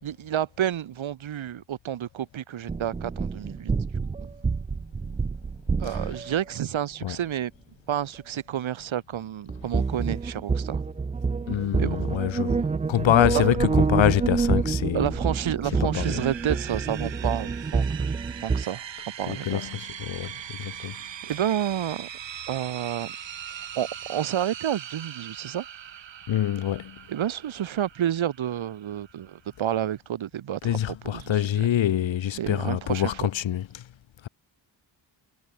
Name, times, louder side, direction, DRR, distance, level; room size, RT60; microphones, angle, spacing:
voice 1, 0.0-3.7 5.8-7.5 7.9-10.8 11.8-12.0 13.3-13.5 14.9-18.1 18.4-18.8 19.2-19.7 21.2-22.1 22.5-23.1 23.8-25.6 27.1-31.4 32.4-33.3, right 10 dB, 90° right, 4.0 m, -30 dB
sound 1, 2.7-6.4 9.5-18.6, right 4 dB, 15° right, 0.3 m, -27 dB
voice 2, 11.5-15.1 15.8-16.2 19.3-20.3 20.6-20.9 26.3-27.0 30.6-33.8, left 11 dB, 75° left, 2.1 m, -25 dB
sound 2, 15.9-30.0, right 10 dB, 70° right, 3.0 m, -41 dB
wide cardioid pair, 165°, 46 cm